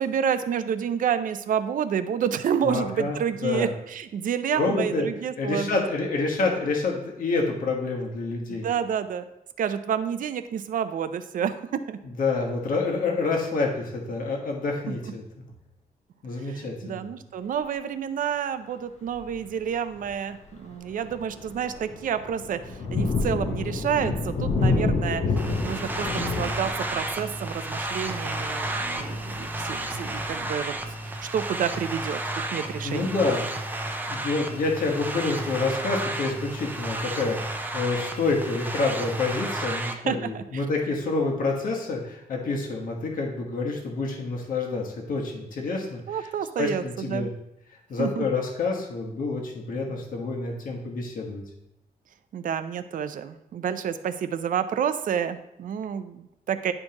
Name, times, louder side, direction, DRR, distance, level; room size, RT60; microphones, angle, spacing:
voice 1, 0.0-5.9 8.5-9.2 9.6-12.0 14.9-15.0 16.4-25.2 25.6-30.7 31.0-33.1 40.1-40.6 46.1-47.3 48.0-48.3 52.3-56.7, right 8 dB, 65° right, 11 dB, 0.5 m, -29 dB
voice 2, 2.6-3.2 3.4-3.7 4.5-5.0 5.4-8.7 12.2-15.2 16.2-17.1 32.8-33.4 34.1-46.0 46.6-47.3 47.9-51.4, left 3 dB, 65° left, 0 dB, 1.2 m, -28 dB
Thunder, 19.1-19.4 20.0-20.1 20.6-31.1, left 3 dB, 50° left, 0.9 m, -30 dB
sound 1, 25.4-39.9, right 2 dB, 10° right, 0.5 m, -32 dB
10.5 x 4.4 x 2.9 m, 0.86 s
wide cardioid pair, 180°, 15 cm